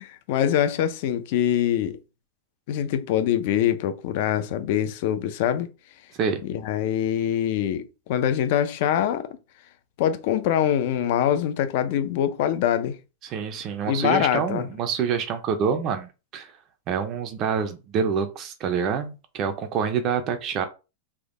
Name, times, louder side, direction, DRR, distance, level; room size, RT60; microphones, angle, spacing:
voice 1, 0.0-2.0 2.7-5.7 6.4-9.3 10.0-13.0 13.8-14.7, left 10 dB, 45° left, 0.4 m, -24 dB
voice 2, 13.2-16.5 16.9-20.6, right 6 dB, 25° right, 0.4 m, -26 dB
3.5 x 2.1 x 3.6 m
supercardioid pair, 170°, 0 cm